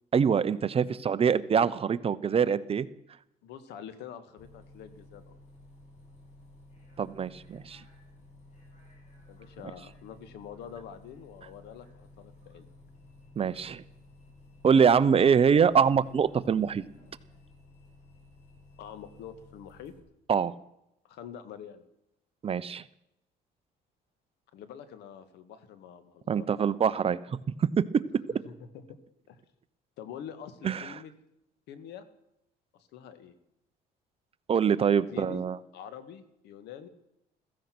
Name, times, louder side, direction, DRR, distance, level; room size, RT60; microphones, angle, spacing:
voice 1, 0.1-2.9 7.0-7.8 13.4-13.8 14.6-16.8 20.3-20.5 22.4-22.8 26.3-27.2 27.6-27.8 30.6-30.9 34.5-35.6, right 7 dB, 35° right, 15 dB, 0.8 m, -24 dB
voice 2, 3.4-5.3 9.3-12.7 14.7-15.1 18.8-19.9 21.0-21.8 24.5-26.5 28.4-29.0 29.3-29.4 30.0-31.1 31.7-32.1 32.7-33.4 34.9-35.4 35.7-36.9, left 8 dB, 80° left, 12 dB, 1.9 m, -46 dB
Bus, 4.4-20.0, left 2 dB, 45° left, 6.3 m, -54 dB
15.5 x 15.0 x 6.1 m, 0.83 s
cardioid pair, 110°, 17 cm